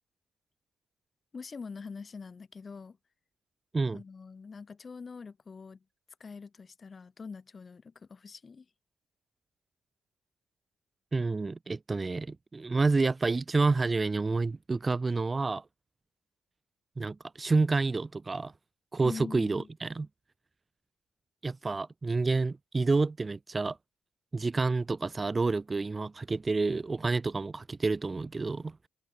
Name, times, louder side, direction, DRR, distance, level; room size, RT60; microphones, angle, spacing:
voice 1, 1.3-3.0 3.9-5.8 6.2-8.7 19.0-19.7, left 5 dB, 35° left, 1.1 m, -44 dB
voice 2, 11.1-15.6 17.0-18.5 18.9-20.1 21.4-23.8 24.3-28.9, right 3 dB, 25° right, 0.6 m, -29 dB
cardioid pair, 90°, 0 cm